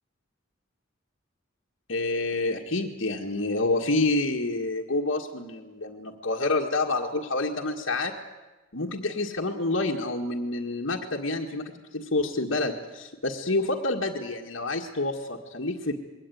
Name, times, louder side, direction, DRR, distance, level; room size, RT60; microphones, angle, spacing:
voice 1, 1.9-8.1 8.7-15.9, left 2 dB, 80° left, -3 dB, 1.9 m, -28 dB
22.0 x 18.0 x 9.5 m, 1.2 s
head